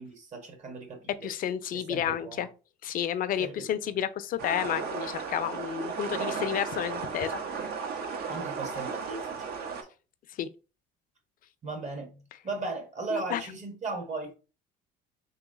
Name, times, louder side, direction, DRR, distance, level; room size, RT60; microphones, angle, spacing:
voice 1, 0.0-1.3 1.7-2.4 3.4-3.7 8.3-9.8 11.6-14.4, right 3 dB, 40° right, 1.2 m, -37 dB
voice 2, 1.2-2.5 2.8-7.7 10.3-10.5 13.1-13.4, left 10 dB, 50° left, 0.5 m, -31 dB
sound 1, 4.4-9.8, right 5 dB, 60° right, 0.9 m, -35 dB
3.2 x 3.1 x 3.7 m
supercardioid pair, 95°, 18 cm